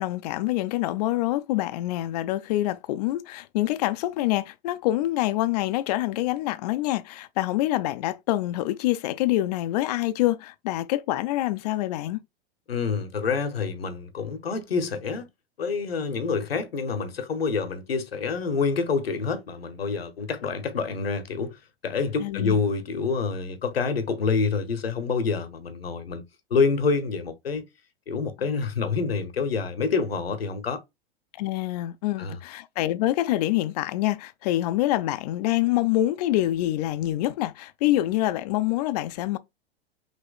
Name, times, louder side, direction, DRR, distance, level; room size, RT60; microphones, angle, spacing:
voice 1, 0.0-12.2 22.2-22.6 28.4-28.5 31.3-39.4, left 15 dB, 45° left, 0.5 m, -26 dB
voice 2, 12.7-15.3 15.6-21.6 21.8-26.2 26.5-27.6 28.1-30.8 32.2-32.4, left 5 dB, 75° left, 0.9 m, -27 dB
5.2 x 2.9 x 2.3 m
figure-of-eight pair, 95°, 30 cm